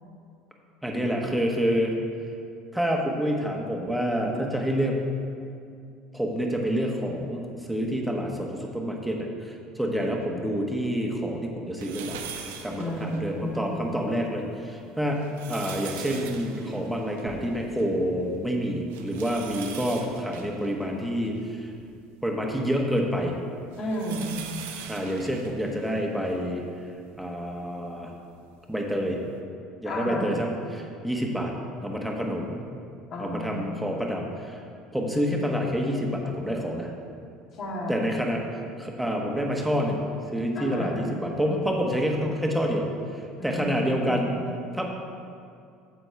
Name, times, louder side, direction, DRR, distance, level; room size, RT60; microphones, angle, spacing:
voice 1, 0.8-1.9 2.7-5.0 6.1-12.2 12.6-21.7 22.2-23.4 24.9-26.6 27.2-28.1 28.7-29.2 29.8-31.5 31.8-32.6 33.2-34.6 34.9-36.9 37.9-40.0 40.3-42.9 43.1-44.3 44.7-44.8, equal, 5° right, 0 dB, 1.3 m, -28 dB
sound 1, 11.8-13.6 14.1-14.2 15.0-18.0 18.3-18.4 18.9-21.9 22.5-26.4 27.1-27.2 28.5-28.6, right 7 dB, 70° right, 0.6 m, -42 dB
voice 2, 12.8-13.8 23.8-24.4 29.8-30.4 33.1-33.8 37.5-38.2 40.6-41.1 43.4-44.1, equal, 45° left, -3 dB, 2.1 m, -32 dB
9.1 x 7.7 x 3.4 m, 2.4 s
figure-of-eight pair, 65°, 0 cm